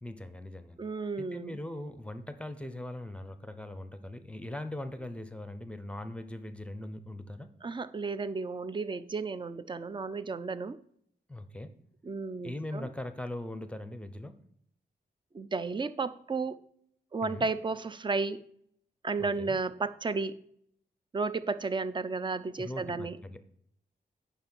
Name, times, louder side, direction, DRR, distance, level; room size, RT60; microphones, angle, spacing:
voice 1, 0.0-0.9 1.2-7.5 11.3-11.7 12.4-14.4 17.2-17.5 19.2-19.6 22.6-23.4, left 1 dB, 5° left, 10 dB, 0.8 m, -40 dB
voice 2, 0.8-1.6 7.6-10.8 12.0-12.9 15.3-16.6 17.1-18.4 19.0-20.4 21.1-23.2, right 4 dB, 30° right, 14 dB, 0.5 m, -33 dB
9.2 x 5.8 x 4.5 m, 0.69 s
cardioid pair, 95°, 17 cm